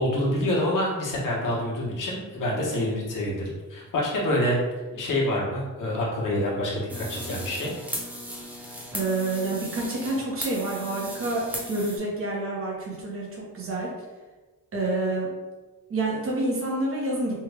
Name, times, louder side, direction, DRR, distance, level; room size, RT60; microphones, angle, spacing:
voice 1, 0.0-4.6 4.9-7.7, left 1 dB, 70° left, -4 dB, 1.2 m, -27 dB
sound 1, 6.9-12.0, equal, 5° right, 0.4 m, -37 dB
voice 2, 8.9-13.9 14.7-15.3 15.9-17.4, right 2 dB, 40° right, -3 dB, 0.9 m, -28 dB
3.3 x 2.3 x 3.3 m, 1.2 s
wide cardioid pair, 170°, 33 cm